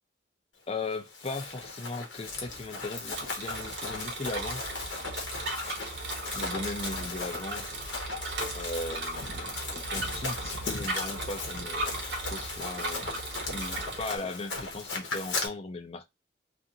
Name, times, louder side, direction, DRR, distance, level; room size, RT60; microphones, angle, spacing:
voice 1, 0.7-4.7 6.3-7.8 8.5-12.0 12.3-16.0, left 3 dB, 35° left, 0.5 m, -38 dB
Run, 0.9-15.5, left 3 dB, 90° left, 1.0 m, -38 dB
Bicycle, 2.4-14.2, right 2 dB, 75° right, 0.9 m, -37 dB
2.5 x 2.5 x 2.7 m
head